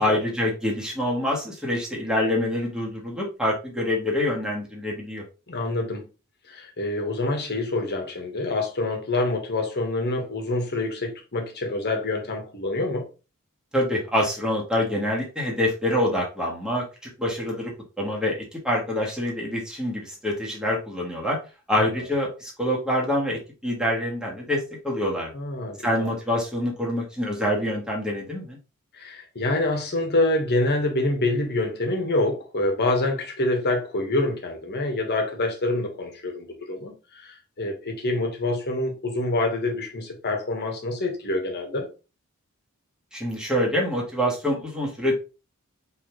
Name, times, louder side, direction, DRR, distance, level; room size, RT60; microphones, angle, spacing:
voice 1, 0.0-5.2 13.7-16.8 17.2-21.4 21.7-25.3 25.8-28.6 43.1-45.1, left 1 dB, 5° right, 1.5 m, -26 dB
voice 2, 5.5-6.0 6.5-13.1 21.8-21.9 25.3-26.1 28.9-41.9, left 2 dB, 50° left, 1.3 m, -26 dB
4.7 x 3.5 x 3.0 m
head